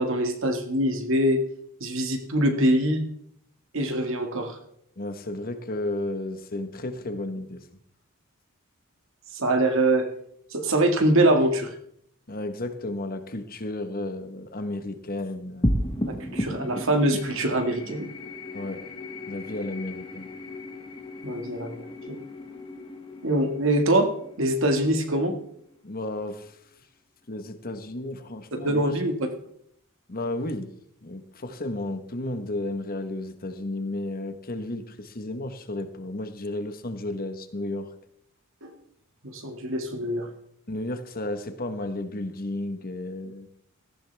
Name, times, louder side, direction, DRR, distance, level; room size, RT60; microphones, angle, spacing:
voice 1, 0.0-1.4 1.8-3.0 3.7-4.6 9.3-10.1 10.5-11.7 16.0-18.1 21.2-22.2 23.2-24.1 24.4-25.3 28.5-29.3 38.6-38.7 39.2-40.3, right 1 dB, 60° right, 5 dB, 2.0 m, -24 dB
voice 2, 5.0-7.6 12.3-15.7 18.5-18.9 19.3-20.3 25.8-26.6 27.3-29.0 30.1-30.7 31.0-37.9 40.7-43.5, left 1 dB, 40° left, 8 dB, 1.3 m, -33 dB
sound 1, 15.6-26.3, left 1 dB, 20° left, 1.3 m, -34 dB
17.5 x 14.5 x 3.5 m, 0.70 s
head